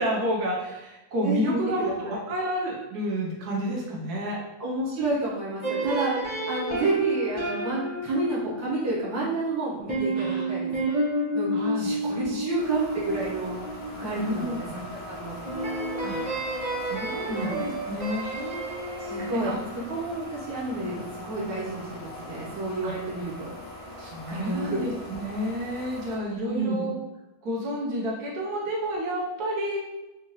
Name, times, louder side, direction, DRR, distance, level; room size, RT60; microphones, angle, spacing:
voice 1, 0.0-4.4 10.2-10.5 11.5-12.6 14.2-14.6 16.0-16.2 16.8-19.6 22.8-22.9 24.0-26.9 27.4-29.8, equal, 70° right, -3 dB, 1.3 m, -30 dB
voice 2, 1.2-2.2 4.6-10.7 11.3-13.6 13.9-14.7 15.1-15.4 17.3-17.5 19.0-19.5 19.9-23.5 24.3-24.8 26.4-26.8, right 2 dB, 15° right, -8 dB, 0.7 m, -30 dB
sound 1, 5.6-14.5 15.4-19.9, right 2 dB, 45° right, 0.3 m, -30 dB
sound 2, 12.6-26.2, left 1 dB, 60° left, 1.2 m, -41 dB
3.7 x 2.7 x 2.9 m, 1.0 s
omnidirectional pair, 1.8 m